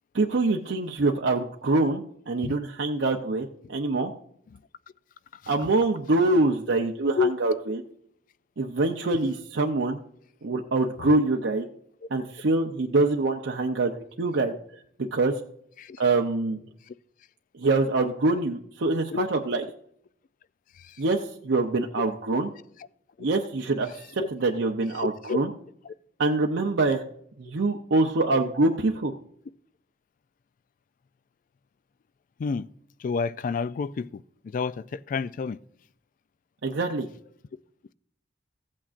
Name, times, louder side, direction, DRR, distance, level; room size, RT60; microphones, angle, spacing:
voice 1, 0.1-4.1 5.5-7.8 8.6-10.0 10.4-11.7 12.1-13.9 14.2-14.5 15.1-15.4 16.0-16.6 17.5-19.6 21.0-22.5 23.2-25.5 26.2-27.0 27.4-29.1 36.6-37.1, right 2 dB, 85° right, 0.7 m, -25 dB
voice 2, 5.3-5.7 7.2-7.3 11.0-11.1 15.8-16.0 16.9-17.0 19.1-19.2 20.7-21.0 24.2-24.3 25.0-25.4 25.9-26.0 32.4-32.7 33.0-35.6, left 5 dB, 45° left, 0.3 m, -30 dB
15.0 x 8.6 x 2.5 m
head